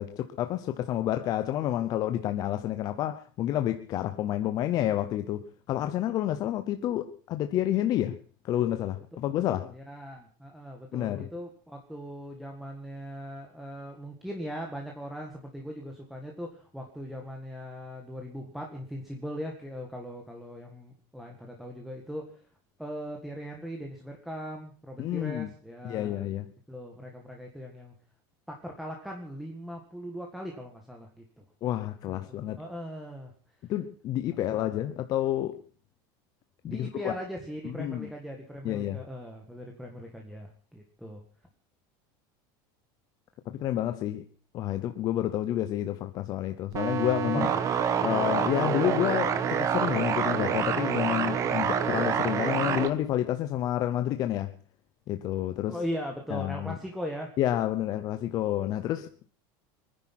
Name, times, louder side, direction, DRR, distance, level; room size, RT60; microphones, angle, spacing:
voice 1, 0.0-8.2 8.4-9.7 10.9-11.3 25.0-25.5 25.8-26.5 31.6-32.6 33.7-35.6 36.6-37.1 37.6-38.1 38.6-39.0 43.5-44.3 44.5-47.5 48.0-54.6 55.1-55.8 56.3-56.8 57.4-59.3, left 12 dB, 35° left, 0.8 m, -29 dB
voice 2, 9.4-22.4 22.8-26.2 26.7-28.0 28.5-31.5 32.1-33.3 33.6-33.7 34.5-34.8 36.6-41.2 47.3-47.5 55.7-57.3, equal, ahead, 1.7 m, -39 dB
sound 1, 46.7-52.9, right 7 dB, 25° right, 1.2 m, -27 dB
23.5 x 10.5 x 5.9 m
cardioid pair, 170°, 12 cm